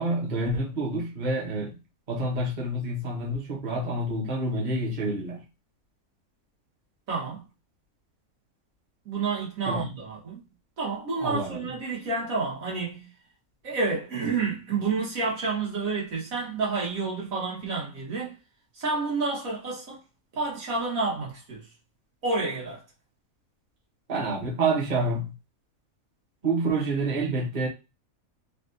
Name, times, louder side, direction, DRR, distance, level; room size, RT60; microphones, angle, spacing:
voice 1, 0.0-1.7 2.1-5.4 9.7-9.9 11.2-11.7 24.1-25.3 26.4-27.7, right 2 dB, 35° right, 1.0 m, -28 dB
voice 2, 7.1-7.4 9.0-10.4 10.8-13.1 13.6-18.3 18.7-20.0 20.3-21.6 22.2-22.8, right 4 dB, 75° right, 1.7 m, -29 dB
3.3 x 2.4 x 2.6 m
omnidirectional pair, 1.5 m